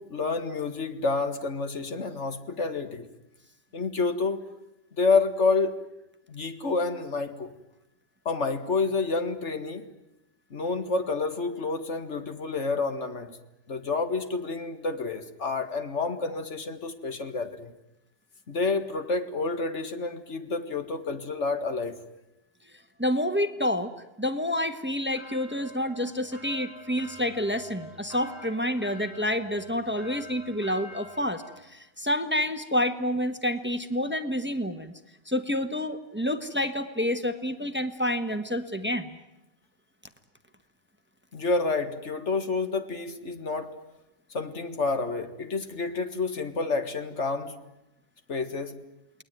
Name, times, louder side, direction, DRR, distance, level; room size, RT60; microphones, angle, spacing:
voice 1, 0.0-3.1 3.7-4.4 5.0-5.8 6.3-7.5 8.3-9.9 10.5-13.4 13.7-17.7 18.5-22.0 41.3-43.7 44.3-47.6 48.3-48.8, left 3 dB, 45° left, 9 dB, 2.0 m, -29 dB
voice 2, 23.0-23.9 24.2-34.9 35.3-39.2, left 1 dB, 5° right, 9 dB, 1.2 m, -28 dB
sound 1, 25.1-31.6, left 1 dB, 25° left, 6.2 m, -46 dB
29.0 x 20.5 x 9.3 m, 0.90 s
omnidirectional pair, 1.9 m